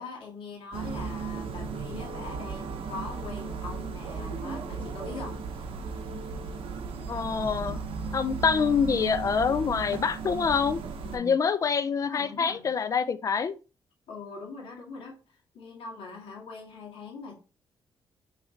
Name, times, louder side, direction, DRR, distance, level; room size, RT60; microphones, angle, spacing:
voice 1, 0.0-5.4 11.0-11.3 12.1-12.7 14.1-15.2 15.5-17.4, left 4 dB, 75° left, 1.9 m, -42 dB
sound 1, 0.7-11.2, right 5 dB, 85° right, 0.8 m, -36 dB
voice 2, 7.1-7.8 8.1-10.8 11.1-13.6, left 6 dB, 35° left, 0.4 m, -26 dB
5.7 x 3.2 x 2.8 m
cardioid pair, 125°, 9 cm